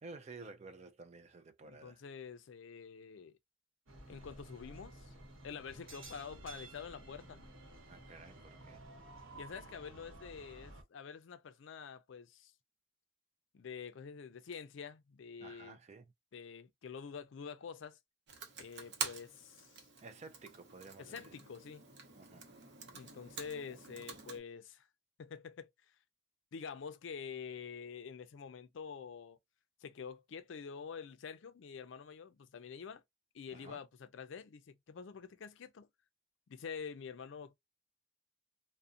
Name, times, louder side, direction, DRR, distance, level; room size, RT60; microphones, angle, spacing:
voice 1, 0.0-2.0 7.9-8.8 15.4-16.1 20.0-21.3 22.2-22.5 33.5-33.8, right 3 dB, 35° right, 0.3 m, -52 dB
voice 2, 1.7-3.3 4.1-5.1 5.4-7.4 9.3-12.5 13.5-15.8 16.3-18.0 18.6-19.8 21.0-21.8 22.9-24.9 25.2-25.7 26.5-29.4 29.8-33.0 33.3-35.9 36.5-37.5, left 6 dB, 65° left, 0.4 m, -47 dB
sound 1, 3.9-10.8, right 2 dB, 90° right, 0.9 m, -53 dB
Computer keyboard, 18.3-24.4, right 5 dB, 55° right, 0.7 m, -46 dB
2.4 x 2.1 x 2.5 m
head